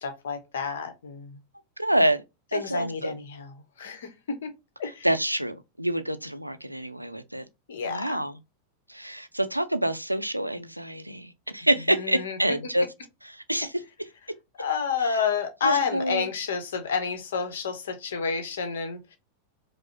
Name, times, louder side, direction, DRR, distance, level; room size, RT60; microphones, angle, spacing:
voice 1, 0.0-1.4 2.5-4.5 4.8-5.1 7.7-8.2 11.9-12.6 14.6-19.2, left 6 dB, 60° left, 0.8 m, -30 dB
voice 2, 1.8-2.2 2.5-3.1 5.0-7.4 7.9-8.4 8.9-12.9 13.3-13.7 15.0-15.2 15.6-16.3, right 1 dB, 90° right, 0.4 m, -27 dB
4.9 x 2.0 x 2.6 m
figure-of-eight pair, 90°, 0 cm